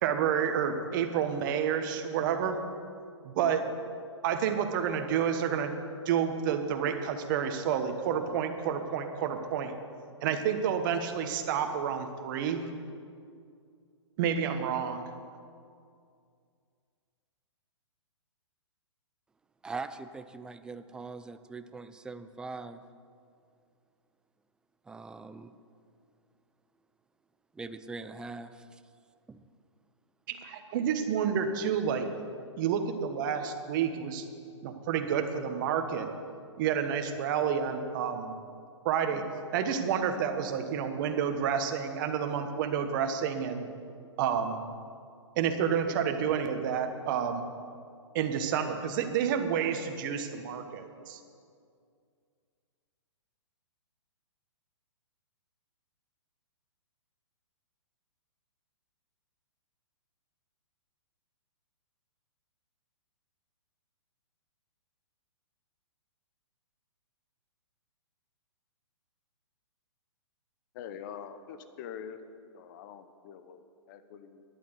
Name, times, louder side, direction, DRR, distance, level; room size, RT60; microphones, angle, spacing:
voice 1, 0.0-2.6 3.2-3.6 4.2-5.7 6.0-9.7 10.2-12.6 14.2-15.0 30.3-32.1 32.6-34.2 34.6-36.1 36.6-38.3 38.8-39.2 39.5-43.7 44.2-44.6 45.4-47.4 48.1-51.2, right 8 dB, 40° right, 7 dB, 1.3 m, -29 dB
voice 2, 19.6-22.8 24.9-25.5 27.5-28.8 29.3-29.4, right 3 dB, 5° right, 11 dB, 0.4 m, -42 dB
voice 3, 70.7-74.4, left 8 dB, 40° left, 10 dB, 0.9 m, -45 dB
11.0 x 8.4 x 8.1 m, 2.3 s
hypercardioid pair, 135°, 16 cm